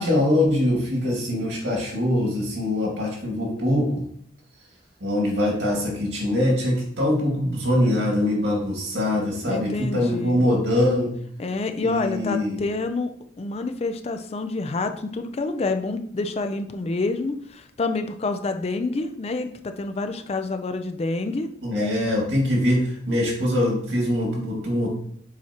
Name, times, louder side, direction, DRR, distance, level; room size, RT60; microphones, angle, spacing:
voice 1, 0.0-4.0 5.0-11.2 11.8-12.6 21.6-24.9, left 1 dB, 70° right, -2 dB, 2.2 m, -23 dB
voice 2, 9.5-10.5 11.4-13.1 13.4-21.5, left 3 dB, 35° left, 8 dB, 0.4 m, -28 dB
7.1 x 4.5 x 2.9 m, 0.65 s
head